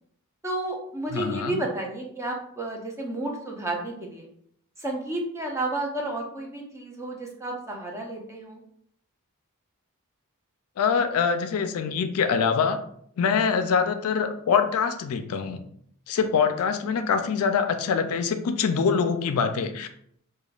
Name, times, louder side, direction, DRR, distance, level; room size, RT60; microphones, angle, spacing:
voice 1, 0.4-4.3 4.8-8.6 16.7-16.8, right 2 dB, 15° right, 0 dB, 0.6 m, -31 dB
voice 2, 1.1-1.6 10.8-12.8 13.2-15.6 16.1-19.9, left 6 dB, 70° left, 8 dB, 0.4 m, -24 dB
4.9 x 2.2 x 2.3 m, 0.66 s
head